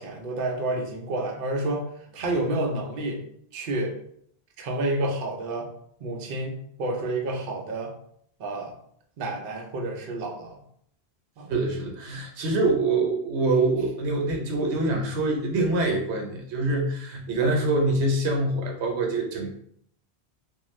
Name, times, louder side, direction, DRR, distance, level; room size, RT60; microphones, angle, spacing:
voice 1, 0.0-1.9 2.1-3.2 3.5-3.9 4.6-5.7 6.0-7.9 8.4-8.7 9.2-10.6 11.4-11.5 13.5-13.6, right 2 dB, 60° right, 0 dB, 0.7 m, -29 dB
voice 2, 11.5-19.5, right 2 dB, 90° right, 1 dB, 1.0 m, -25 dB
2.4 x 2.2 x 3.0 m, 0.67 s
omnidirectional pair, 1.1 m